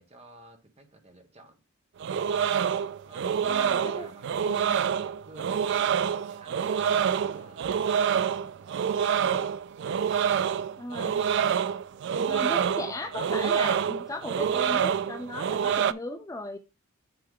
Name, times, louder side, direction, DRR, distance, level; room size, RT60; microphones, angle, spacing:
voice 1, 0.0-1.6 3.0-9.6, right 1 dB, 30° right, 1.3 m, -52 dB
sound 1, 2.0-15.9, right 8 dB, 50° right, 0.3 m, -27 dB
voice 2, 3.4-4.1 4.4-4.8 10.8-11.2 12.3-16.6, left 2 dB, 15° left, 0.5 m, -37 dB
9.5 x 3.4 x 3.7 m
head